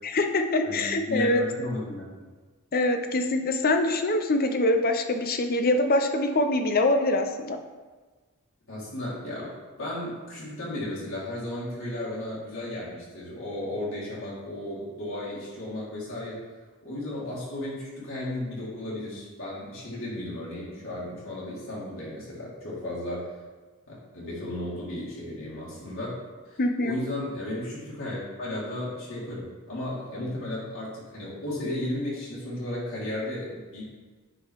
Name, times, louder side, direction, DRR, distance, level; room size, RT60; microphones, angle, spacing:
voice 1, 0.0-1.4 2.7-7.6 26.6-27.0, left 2 dB, 40° left, 6 dB, 0.6 m, -24 dB
voice 2, 0.6-2.2 8.7-9.5 9.8-16.4 16.8-23.3 23.9-26.2 26.4-33.8, left 1 dB, 60° left, -8 dB, 2.3 m, -34 dB
9.9 x 3.8 x 4.6 m, 1.4 s
head